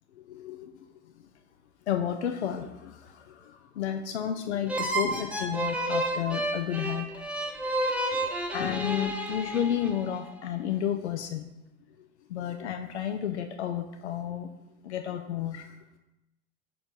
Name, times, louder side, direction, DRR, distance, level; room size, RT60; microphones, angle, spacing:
voice 1, 0.2-0.7 1.9-7.1 8.2-8.3 8.5-11.4 12.3-14.5 14.8-15.7, left 9 dB, 75° left, 6 dB, 0.5 m, -31 dB
sound 1, 4.7-10.2, right 1 dB, 5° right, 0.8 m, -31 dB
6.9 x 3.2 x 5.4 m, 0.95 s
figure-of-eight pair, 75°, 34 cm